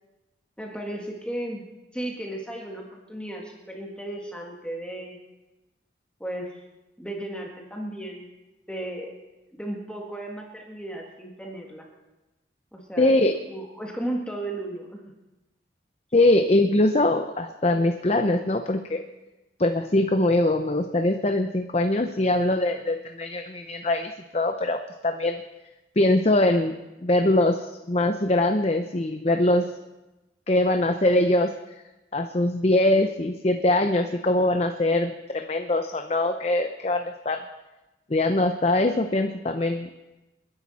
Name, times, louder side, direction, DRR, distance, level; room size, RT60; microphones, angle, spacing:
voice 1, 0.6-1.7 1.9-5.2 6.2-6.6 7.0-8.3 8.7-9.1 9.5-11.9 12.7-13.1 13.5-15.0, right 1 dB, 5° left, 0 dB, 1.8 m, -35 dB
voice 2, 13.0-13.3 16.1-19.0 19.6-24.8 25.0-25.4 26.0-26.8 27.0-29.6 30.5-31.5 32.1-37.4 38.1-39.9, left 1 dB, 35° left, 6 dB, 0.7 m, -22 dB
29.0 x 10.5 x 4.3 m, 1.0 s
head